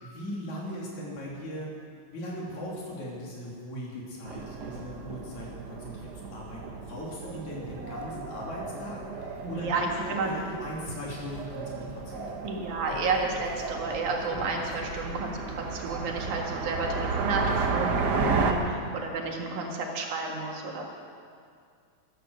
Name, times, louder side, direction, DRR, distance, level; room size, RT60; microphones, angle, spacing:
voice 1, 0.0-1.7 2.1-6.6 6.9-9.7 10.2-12.4, equal, 80° left, -4 dB, 4.6 m, -39 dB
sound 1, 4.3-18.5, right 4 dB, 60° right, 1.1 m, -33 dB
voice 2, 9.4-10.3 12.4-20.8, right 3 dB, 90° right, 0 dB, 3.3 m, -31 dB
14.5 x 13.0 x 6.5 m, 2.3 s
omnidirectional pair, 3.3 m